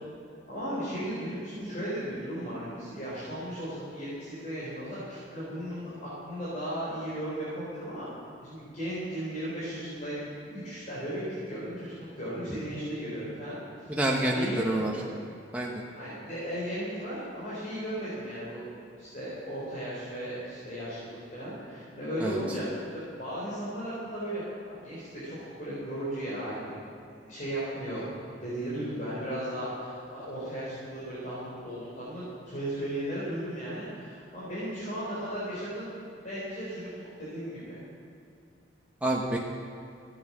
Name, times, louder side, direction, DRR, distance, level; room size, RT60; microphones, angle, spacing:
voice 1, 0.5-8.1 8.4-13.6 14.3-15.1 15.9-18.6 19.0-24.4 24.7-36.0 36.2-37.8, equal, 40° left, -10 dB, 4.1 m, -36 dB
voice 2, 13.9-14.9 15.5-15.8 22.2-22.6 39.0-39.4, right 1 dB, 10° right, -2 dB, 0.9 m, -28 dB
14.5 x 8.6 x 7.4 m, 2.5 s
head